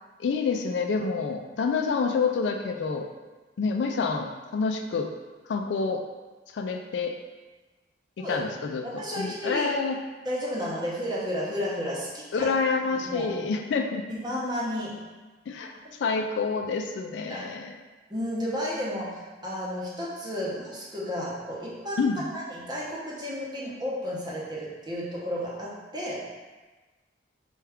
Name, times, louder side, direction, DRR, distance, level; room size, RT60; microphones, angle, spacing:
voice 1, 0.2-3.1 3.6-5.1 5.5-6.0 6.5-7.1 8.2-8.8 9.2-10.0 12.3-14.0 15.5-15.7 16.0-17.8 22.0-22.2, left 4 dB, 75° left, 4 dB, 0.3 m, -27 dB
voice 2, 8.8-9.7 10.2-12.5 12.9-13.3 14.1-15.0 15.8-15.9 17.3-17.4 18.1-22.1 22.3-26.2, equal, 25° right, -6 dB, 0.8 m, -32 dB
4.4 x 2.3 x 3.4 m, 1.3 s
head